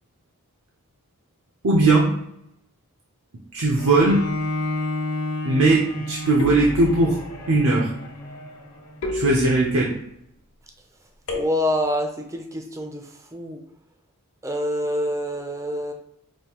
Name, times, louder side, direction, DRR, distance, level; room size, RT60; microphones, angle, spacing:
voice 1, 1.6-2.2 3.5-4.3 5.4-7.2 7.5-8.0 9.1-10.0, right 2 dB, 65° right, -1 dB, 0.7 m, -19 dB
Bowed string instrument, 3.8-9.0, left 1 dB, 90° left, 1.0 m, -30 dB
sound 1, 6.4-7.3 9.0-10.0 11.3-12.0, left 1 dB, 60° left, 1.0 m, -32 dB
voice 2, 11.3-13.6 14.4-15.9, equal, 15° right, 3 dB, 0.5 m, -26 dB
5.2 x 2.7 x 3.0 m, 0.77 s
head